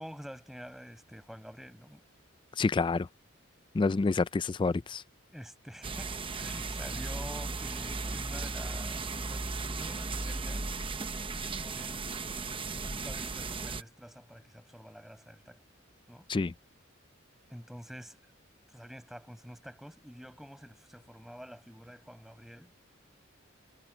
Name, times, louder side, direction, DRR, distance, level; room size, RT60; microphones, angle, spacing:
voice 1, 0.0-2.0 5.3-10.7 11.4-15.6 16.1-16.3 17.5-18.3 18.7-22.7, equal, ahead, 6.8 m, -48 dB
voice 2, 2.6-3.1 3.8-5.0 16.3-16.5, left 3 dB, 25° left, 0.3 m, -28 dB
sound 1, 5.8-13.8, right 3 dB, 25° right, 0.9 m, -36 dB
head